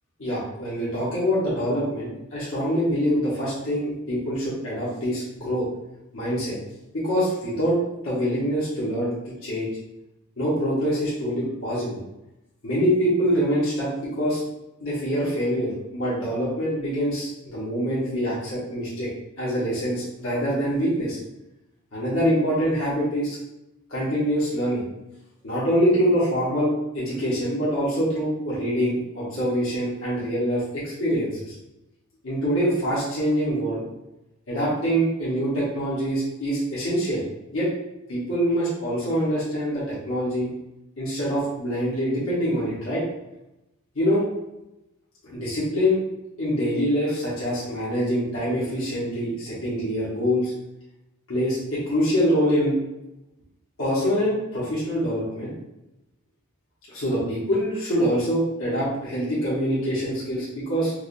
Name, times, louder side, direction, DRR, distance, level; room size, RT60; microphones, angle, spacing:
voice 1, 0.2-5.6 6.1-6.6 6.9-7.8 8.0-9.1 9.4-9.7 10.4-12.0 12.6-14.4 14.8-19.1 19.4-21.2 21.9-23.4 23.9-24.8 25.4-31.5 32.2-33.8 34.5-37.2 37.5-37.7 38.1-40.5 41.0-43.0 43.9-44.2 45.2-46.0 46.4-50.5 51.3-52.7 53.8-55.5 56.9-60.9, equal, 65° left, -10 dB, 1.2 m, -25 dB
4.8 x 2.4 x 2.6 m, 0.93 s
head